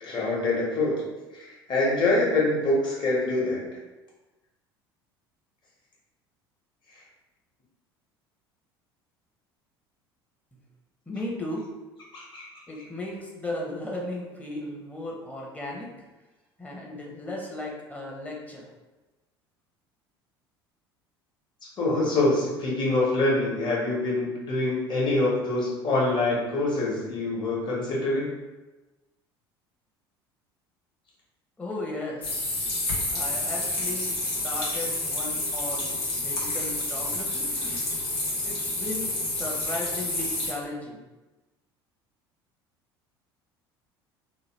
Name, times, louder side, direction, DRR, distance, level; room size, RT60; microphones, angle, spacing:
voice 1, 0.0-1.0 1.3-3.6 12.1-12.4 21.8-28.3, left 2 dB, 35° left, -5 dB, 1.2 m, -25 dB
voice 2, 11.1-11.7 12.7-15.9 16.6-18.7 31.6-32.4 33.1-37.5 38.4-41.0, left 1 dB, 10° left, -3 dB, 0.8 m, -36 dB
sound 1, 32.2-40.5, left 2 dB, 80° left, 0.8 m, -29 dB
2.9 x 2.2 x 3.1 m, 1.1 s
hypercardioid pair, 65°, 13 cm